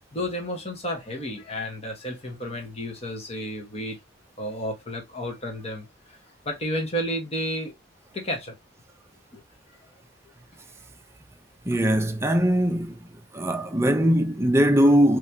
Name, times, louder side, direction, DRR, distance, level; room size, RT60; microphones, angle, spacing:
voice 1, 0.1-4.0 4.4-6.2 6.4-7.7 8.1-8.6 9.3-9.4, equal, 30° left, 1.3 m, -32 dB
voice 2, 11.7-15.2, equal, 15° right, 0.6 m, -21 dB
3.4 x 3.3 x 2.8 m
head